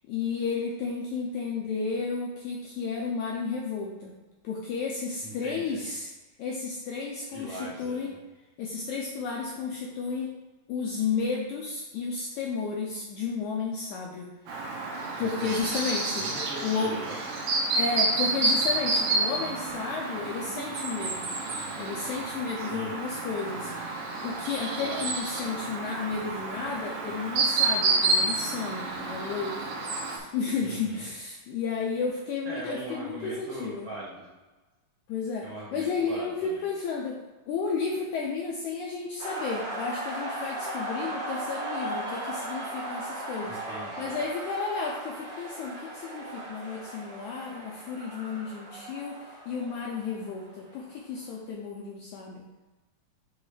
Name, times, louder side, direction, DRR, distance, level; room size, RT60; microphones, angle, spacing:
voice 1, 0.1-4.1 4.4-6.1 6.4-8.1 8.6-10.3 10.7-14.8 15.2-16.3 16.6-17.2 17.7-21.3 21.8-23.7 24.2-33.9 35.1-37.2 37.5-43.6 44.0-52.5, left 5 dB, 85° left, -1 dB, 1.7 m, -32 dB
voice 2, 5.2-5.8 7.3-8.2 15.2-15.8 16.2-17.1 22.6-23.0 24.8-25.1 30.6-31.1 32.4-34.3 35.4-36.6 43.4-44.1, right 1 dB, 85° right, -7 dB, 1.1 m, -41 dB
Chirp tweet, 14.5-30.2, right 3 dB, 70° right, 2.3 m, -29 dB
sound 1, 39.2-50.9, right 1 dB, 50° right, 0.8 m, -37 dB
7.2 x 3.2 x 4.7 m, 1.2 s
omnidirectional pair, 4.1 m